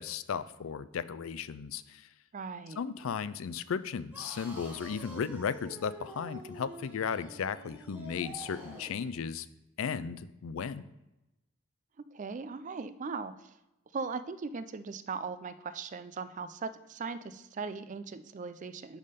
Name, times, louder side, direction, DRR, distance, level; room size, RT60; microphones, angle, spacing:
voice 1, 0.0-2.1 2.8-9.5 9.8-10.8, left 6 dB, 75° left, 14 dB, 0.4 m, -35 dB
voice 2, 2.3-2.8 12.0-13.5 13.9-19.0, right 4 dB, 35° right, 13 dB, 0.4 m, -39 dB
sound 1, 4.1-9.0, right 1 dB, 10° right, 1.5 m, -47 dB
10.5 x 3.7 x 5.2 m, 0.94 s
head